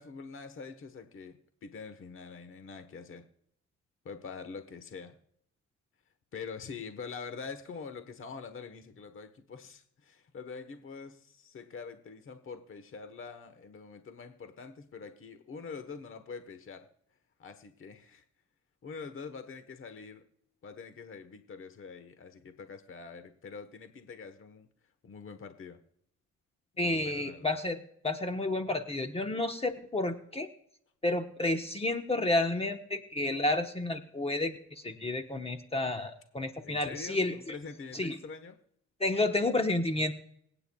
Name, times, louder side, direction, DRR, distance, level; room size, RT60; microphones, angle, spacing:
voice 1, 0.0-3.3 4.0-5.2 6.3-16.9 17.4-18.2 18.8-20.2 20.6-24.7 25.0-25.8 26.8-27.6 36.6-38.6, left 5 dB, 45° left, 9 dB, 1.2 m, -45 dB
voice 2, 26.8-30.5 31.0-37.6 37.9-38.2 39.0-40.1, left 2 dB, 20° left, 6 dB, 1.1 m, -31 dB
26.0 x 9.1 x 2.3 m, 0.68 s
cardioid pair, 90°, 30 cm